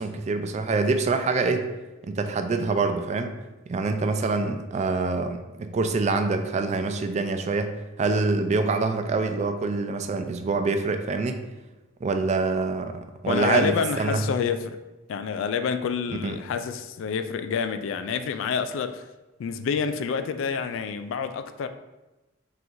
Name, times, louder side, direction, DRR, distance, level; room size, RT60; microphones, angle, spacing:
voice 1, 0.0-1.7 2.1-3.3 3.7-7.7 8.0-11.4 12.0-14.2 16.2-16.4, right 3 dB, 35° right, 0.3 m, -25 dB
voice 2, 13.3-14.8 15.1-19.1 19.4-21.7, left 6 dB, 70° left, 0.3 m, -28 dB
3.9 x 2.6 x 4.4 m
head